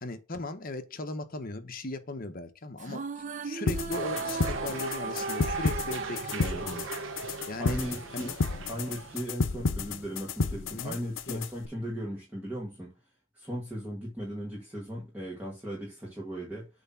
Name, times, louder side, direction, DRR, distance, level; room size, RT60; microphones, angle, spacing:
voice 1, 0.0-6.9 7.5-7.8 8.1-8.4 10.7-11.0 11.3-11.4, left 2 dB, 45° left, 1.0 m, -38 dB
sound 1, 2.8-8.3, right 4 dB, 35° right, 0.5 m, -37 dB
sound 2, 3.7-11.7, left 4 dB, 70° left, 0.7 m, -32 dB
sound 3, 3.9-9.3, right 4 dB, 70° right, 1.0 m, -40 dB
voice 2, 7.6-8.3 8.7-12.9 13.3-16.7, equal, 10° right, 2.0 m, -37 dB
8.1 x 3.4 x 5.7 m
head